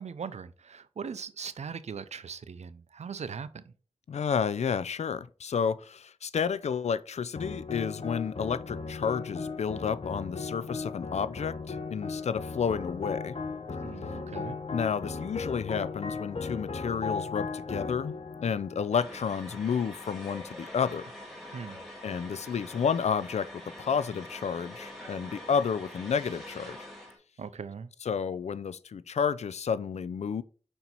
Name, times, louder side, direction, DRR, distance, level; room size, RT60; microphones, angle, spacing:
voice 1, 0.0-3.7 13.8-14.6 21.5-21.8 27.4-27.9, right 6 dB, 90° right, 0.5 m, -40 dB
voice 2, 4.1-13.4 14.7-18.2 18.4-21.0 22.0-26.8 28.0-30.4, left 6 dB, 85° left, 0.4 m, -31 dB
sound 1, 7.4-19.8, left 4 dB, 60° left, 0.9 m, -37 dB
sound 2, 18.9-27.2, left 1 dB, ahead, 2.6 m, -45 dB
5.3 x 4.4 x 4.0 m
cardioid pair, 50°, 11 cm